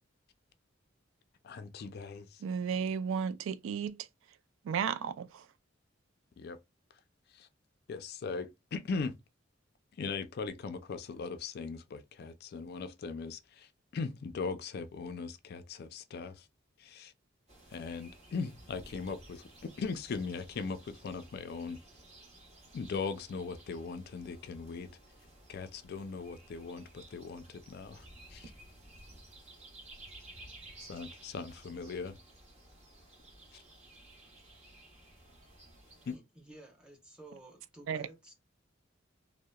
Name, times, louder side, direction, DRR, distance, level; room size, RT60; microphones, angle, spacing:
voice 1, 1.4-2.4 6.4-6.6 7.3-7.5 7.9-9.2 9.9-16.5 16.8-17.1 17.7-19.5 19.8-21.8 22.7-24.9 25.5-28.5 30.8-32.2 33.5-33.6 36.1-36.2, left 4 dB, 55° left, 0.3 m, -39 dB
voice 2, 2.4-4.1 4.6-5.5 37.9-38.1, right 7 dB, 80° right, 0.3 m, -34 dB
sound 1, 17.5-36.2, right 1 dB, 35° right, 0.9 m, -55 dB
voice 3, 36.1-38.3, right 2 dB, 5° right, 0.9 m, -53 dB
2.8 x 2.0 x 2.2 m
head